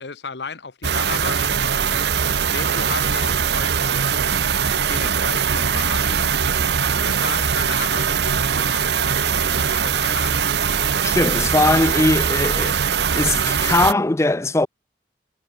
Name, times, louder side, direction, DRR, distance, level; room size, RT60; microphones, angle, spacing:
voice 1, 0.0-2.0 2.5-4.4 4.8-6.3 7.0-10.5, left 4 dB, 70° left, 1.1 m, -34 dB
sound 1, 0.8-13.9, right 7 dB, 65° right, 0.8 m, -21 dB
voice 2, 11.0-12.8 13.2-14.7, left 2 dB, 15° left, 0.6 m, -20 dB
head